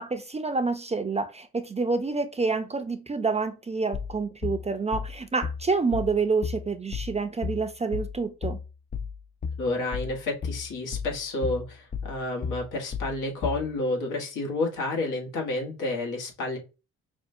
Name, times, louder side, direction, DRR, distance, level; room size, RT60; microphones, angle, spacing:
voice 1, 0.0-8.6, right 4 dB, 20° right, 0.5 m, -28 dB
sound 1, 3.9-13.7, left 6 dB, 30° left, 0.4 m, -34 dB
voice 2, 9.6-16.6, left 2 dB, 85° left, 1.3 m, -30 dB
5.4 x 2.2 x 2.6 m
cardioid pair, 80°, 30 cm